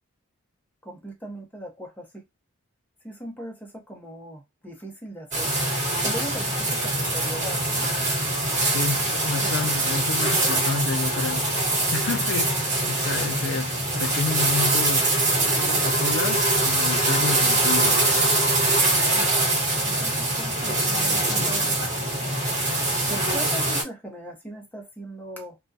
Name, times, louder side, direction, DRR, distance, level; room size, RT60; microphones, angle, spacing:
voice 1, 0.8-2.2 3.0-5.5 6.0-7.9 9.4-10.1 10.4-10.6 19.1-19.3 19.8-22.2 23.1-25.6, right 1 dB, 10° left, 0.7 m, -39 dB
sound 1, 5.3-23.8, right 2 dB, 35° right, 1.2 m, -23 dB
voice 2, 8.7-11.5 11.9-13.7 14.0-15.1 15.8-18.0, left 5 dB, 60° left, 0.3 m, -30 dB
2.3 x 2.2 x 2.5 m
head